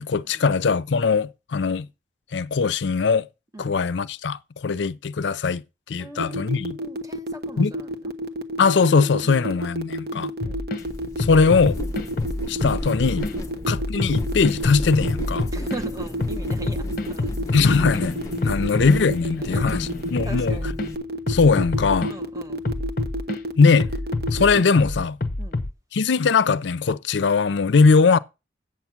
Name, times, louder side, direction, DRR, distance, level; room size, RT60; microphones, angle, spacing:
voice 1, 0.0-1.9 2.3-3.3 3.6-6.8 7.6-7.7 8.6-10.3 11.2-11.8 12.5-13.3 13.7-15.5 17.5-18.2 18.4-20.6 21.3-22.1 23.6-23.9 24.3-25.2 25.9-28.2, left 4 dB, 75° left, 0.5 m, -20 dB
voice 2, 6.0-8.1 10.1-10.7 13.4-13.6 15.5-17.4 18.6-18.7 19.4-19.8 20.2-20.7 22.0-22.6 25.4-25.6, right 2 dB, 20° right, 1.1 m, -40 dB
sound 1, 6.2-24.6, right 1 dB, 55° right, 1.0 m, -30 dB
sound 2, 10.4-10.8 11.2-13.3 13.7-15.8 16.2-20.9 21.3-22.1 22.6-23.4 23.8-25.7, left 2 dB, 50° left, 0.8 m, -27 dB
sound 3, 10.8-20.9, left 1 dB, 20° left, 0.8 m, -36 dB
8.6 x 7.3 x 5.8 m
head